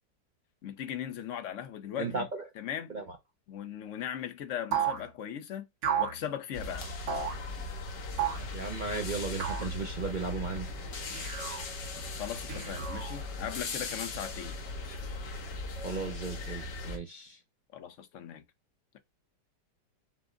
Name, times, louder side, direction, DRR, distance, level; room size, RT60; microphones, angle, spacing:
voice 1, 0.6-2.3 2.6-2.9 3.5-5.7 6.0-6.9 12.2-14.6 17.7-18.4, left 10 dB, 55° left, 1.0 m, -38 dB
voice 2, 2.0-2.4 2.9-3.2 8.5-10.7 15.8-17.4, right 4 dB, 60° right, 0.5 m, -35 dB
sound 1, 4.7-5.0 5.8-6.2 7.1-7.4 8.2-8.5 9.4-9.7 11.1-11.6 12.5-13.2, right 8 dB, 85° right, 2.1 m, -32 dB
sound 2, 6.5-17.0, left 3 dB, 75° left, 1.8 m, -39 dB
6.1 x 2.1 x 3.7 m
omnidirectional pair, 1.9 m